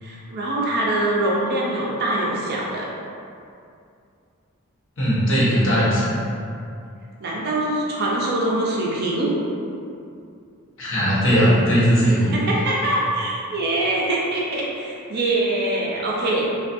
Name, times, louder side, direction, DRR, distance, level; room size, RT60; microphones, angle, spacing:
voice 1, 0.0-2.9 7.2-9.3 12.3-16.5, right 1 dB, 45° right, -4 dB, 0.4 m, -23 dB
voice 2, 5.0-6.1 10.8-12.4, equal, 60° left, -8 dB, 0.8 m, -18 dB
2.4 x 2.2 x 2.5 m, 2.5 s
head